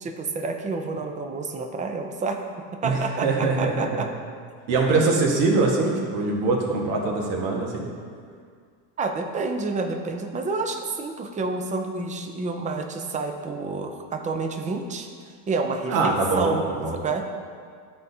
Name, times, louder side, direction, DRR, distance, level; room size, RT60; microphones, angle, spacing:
voice 1, 0.0-2.4 2.7-4.1 9.0-15.1 15.5-16.6 16.9-17.2, right 3 dB, 15° right, 4 dB, 0.5 m, -29 dB
voice 2, 2.8-4.1 4.7-7.9 15.9-17.0, right 3 dB, 85° right, -1 dB, 1.5 m, -23 dB
11.5 x 4.1 x 2.7 m, 2.1 s
supercardioid pair, 105°, 48 cm